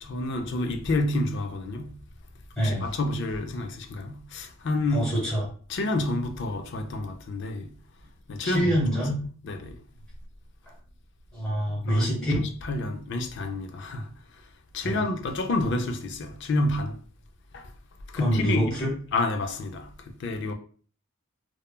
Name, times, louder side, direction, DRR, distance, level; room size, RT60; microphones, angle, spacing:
voice 1, 0.0-2.0 2.6-5.1 5.7-7.7 8.3-8.7 9.4-9.8 11.7-14.1 14.7-17.0 17.5-17.7 18.1-20.5, left 2 dB, 55° left, 0.4 m, -29 dB
voice 2, 2.6-2.9 4.9-5.5 8.4-9.2 11.3-12.4 14.8-15.0 18.1-18.9, equal, 5° left, 0.9 m, -26 dB
3.0 x 2.2 x 2.2 m
head